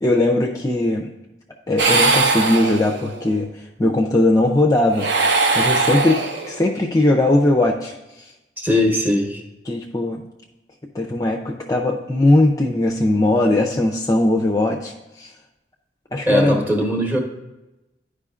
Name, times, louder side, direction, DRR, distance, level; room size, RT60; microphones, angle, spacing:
voice 1, 0.0-1.1 1.7-3.5 3.8-5.1 5.5-6.2 6.5-7.9 9.7-10.2 10.9-15.3 16.1-16.7, left 1 dB, 20° left, 1 dB, 0.4 m, -19 dB
sound 1, 1.8-3.3 4.9-6.7, right 3 dB, 65° right, 0.7 m, -20 dB
voice 2, 8.6-9.4 16.3-17.2, left 1 dB, 10° right, 0 dB, 1.0 m, -19 dB
11.0 x 4.9 x 2.4 m, 1.0 s
head